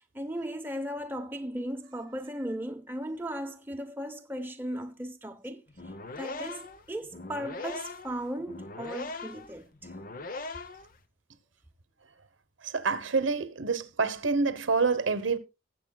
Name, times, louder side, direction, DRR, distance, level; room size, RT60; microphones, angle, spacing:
voice 1, 0.0-5.6 6.2-9.7, equal, 10° right, 0.8 m, -36 dB
sound 1, 5.7-11.0, left 3 dB, 45° left, 0.8 m, -40 dB
voice 2, 12.6-15.4, right 4 dB, 85° right, 1.1 m, -27 dB
19.5 x 7.4 x 2.3 m
head